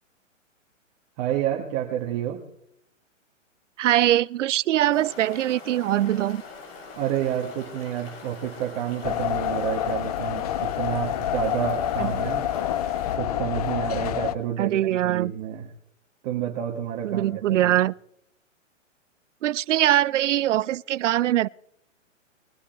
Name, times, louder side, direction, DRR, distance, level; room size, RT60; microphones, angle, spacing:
voice 1, 1.2-2.4 6.9-12.5 13.1-15.7 16.2-17.8, right 10 dB, 30° right, 1.7 m, -29 dB
voice 2, 3.8-6.4 12.0-12.1 14.6-15.3 17.0-17.9 19.4-21.5, right 13 dB, 70° right, 0.5 m, -22 dB
sound 1, 4.9-13.2, left 4 dB, 50° left, 4.0 m, -43 dB
sound 2, 9.0-14.3, left 11 dB, 30° left, 0.5 m, -27 dB
22.0 x 8.3 x 4.5 m
hypercardioid pair, 140°, 39 cm